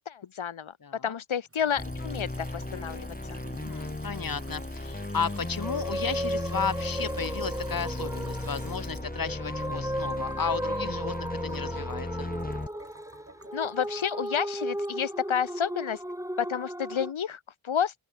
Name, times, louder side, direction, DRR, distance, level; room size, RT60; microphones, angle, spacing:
voice 1, 0.0-0.7 1.0-3.4 13.5-16.0 16.4-17.9, left 8 dB, 80° left, 1.1 m, -30 dB
Water tap faucet / Sink (filling or washing) / Trickle dribble, 1.5-15.6, right 2 dB, 30° right, 7.5 m, -52 dB
sound 1, 1.8-12.7, left 1 dB, 20° left, 3.4 m, -36 dB
voice 2, 3.6-12.3, left 6 dB, 45° left, 1.5 m, -34 dB
sound 2, 5.4-17.1, right 1 dB, 5° right, 3.6 m, -35 dB
open air
wide cardioid pair, 70°, 47 cm